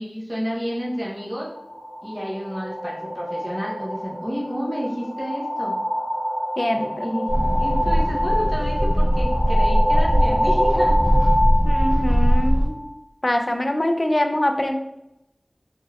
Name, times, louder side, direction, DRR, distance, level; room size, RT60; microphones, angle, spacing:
voice 1, 0.0-1.5 2.0-5.8 6.7-7.3 7.6-11.0, equal, 20° right, -5 dB, 0.7 m, -30 dB
sound 1, 1.2-12.9, equal, 80° left, 0.7 m, -26 dB
voice 2, 6.6-7.1 11.6-12.7 13.2-14.8, left 1 dB, 45° left, 5 dB, 0.3 m, -23 dB
sound 2, 7.3-12.7, equal, 40° right, 1.2 m, -20 dB
3.2 x 2.5 x 2.3 m, 0.86 s
wide cardioid pair, 45°, 0 cm